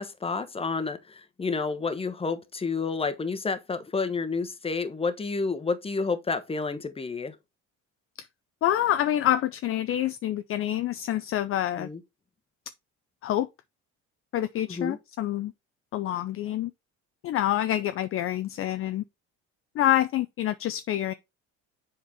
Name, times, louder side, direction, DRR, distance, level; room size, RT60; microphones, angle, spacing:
voice 1, 0.0-7.4 11.8-12.0 14.7-15.0, left 4 dB, 20° left, 1.0 m, -30 dB
voice 2, 8.6-11.9 13.2-13.5 14.3-15.5 15.9-16.7 17.2-19.0 19.8-21.1, left 12 dB, 45° left, 0.4 m, -27 dB
7.3 x 4.4 x 3.4 m
supercardioid pair, 95°, 32 cm